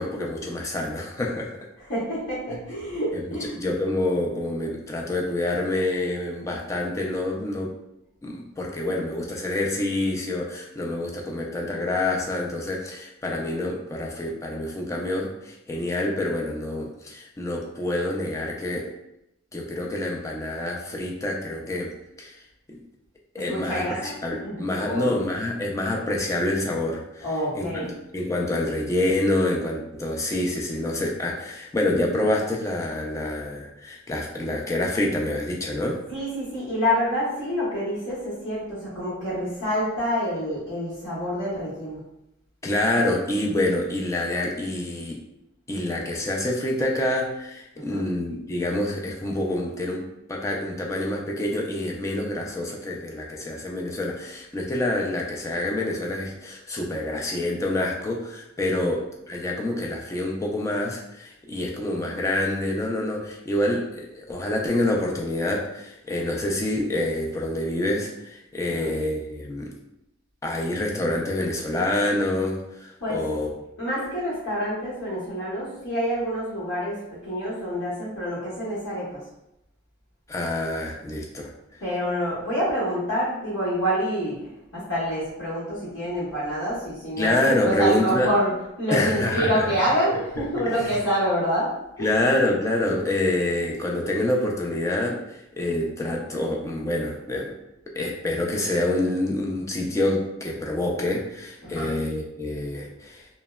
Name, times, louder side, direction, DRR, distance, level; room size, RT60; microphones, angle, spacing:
voice 1, 0.0-1.6 2.5-2.6 3.1-3.2 3.6-7.7 8.2-18.9 19.5-21.9 22.2-22.4 22.7-22.8 23.3-27.3 27.5-36.0 42.6-45.2 45.7-69.7 70.4-73.5 80.3-81.5 87.2-88.3 88.9-89.7 90.6-91.0 92.0-97.5 98.0-103.3, left 1 dB, 15° left, -1 dB, 0.3 m, -27 dB
voice 2, 1.8-3.6 23.4-24.1 24.4-25.3 27.2-27.9 36.1-42.0 47.9-48.0 58.8-58.9 68.7-68.9 73.0-73.2 73.8-79.2 81.8-84.4 84.7-88.5 88.8-91.7 92.0-92.2 101.6-102.0, equal, 90° left, -9 dB, 0.9 m, -27 dB
3.0 x 2.1 x 2.2 m, 0.85 s
head